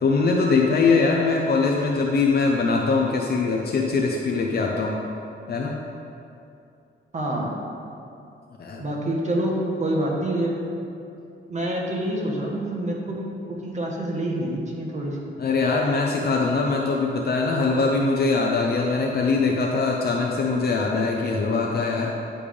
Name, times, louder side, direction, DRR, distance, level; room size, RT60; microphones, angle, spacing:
voice 1, 0.0-4.9 5.5-5.8 8.6-8.8 15.4-22.1, left 4 dB, 50° left, 0 dB, 0.6 m, -22 dB
voice 2, 7.1-7.6 8.8-10.5 11.5-15.2, right 1 dB, 35° right, -2 dB, 1.3 m, -27 dB
10.0 x 3.4 x 5.1 m, 2.6 s
cardioid pair, 110°, 20 cm